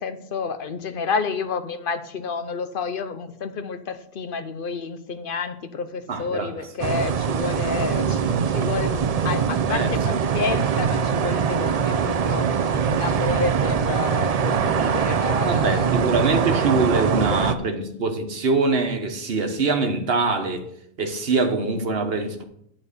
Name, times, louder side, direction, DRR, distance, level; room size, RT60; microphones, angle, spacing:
voice 1, 0.0-12.5 12.8-16.0 16.3-17.5, left 5 dB, 60° left, 0.9 m, -30 dB
voice 2, 6.1-6.7 9.7-9.9 15.4-20.7 21.0-22.4, right 3 dB, 65° right, 1.4 m, -24 dB
sound 1, 6.8-17.5, right 7 dB, 50° right, 0.5 m, -22 dB
11.0 x 4.3 x 6.6 m
omnidirectional pair, 1.1 m